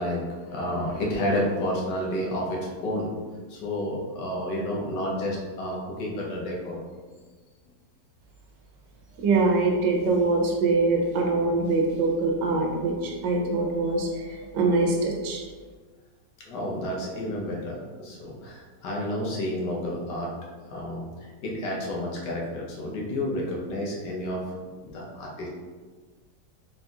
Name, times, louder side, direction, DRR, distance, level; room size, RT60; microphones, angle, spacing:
voice 1, 0.0-3.1 3.5-6.8 16.4-20.3 20.7-21.0 21.4-24.4 24.8-25.5, left 1 dB, 75° left, -3 dB, 1.5 m, -30 dB
voice 2, 9.2-15.4, right 3 dB, 80° right, 0 dB, 1.4 m, -24 dB
4.0 x 4.0 x 2.3 m, 1.4 s
omnidirectional pair, 1.9 m